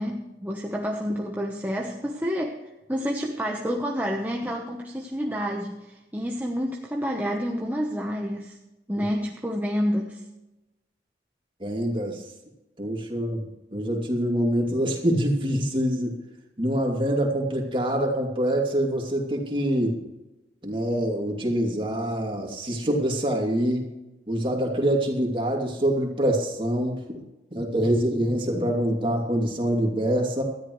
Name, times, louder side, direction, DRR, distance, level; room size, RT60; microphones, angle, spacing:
voice 1, 0.0-2.6 2.9-8.6 8.9-10.2, equal, 10° right, 0 dB, 1.0 m, -29 dB
voice 2, 11.6-12.2 12.8-13.4 13.7-16.1 16.6-20.0 20.6-23.9 24.3-27.0 27.5-30.4, right 1 dB, 30° right, 1 dB, 2.8 m, -25 dB
19.0 x 13.5 x 3.2 m, 1.0 s
head